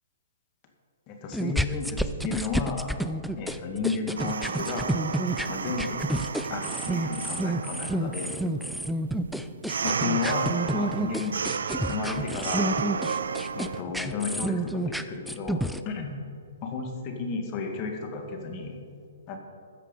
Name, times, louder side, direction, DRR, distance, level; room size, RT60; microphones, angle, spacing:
voice 1, 1.1-2.9 3.3-4.9 5.5-6.1 6.5-8.4 9.8-11.4 11.9-12.8 13.6-16.1 16.6-18.8 19.3-19.4, left 5 dB, 35° left, 3 dB, 1.9 m, -33 dB
sound 1, 1.3-15.8, right 1 dB, ahead, 0.4 m, -30 dB
sound 2, 4.2-13.8, right 6 dB, 80° right, 0.5 m, -33 dB
13.5 x 7.5 x 5.3 m, 2.4 s
hypercardioid pair, 140°, 0 cm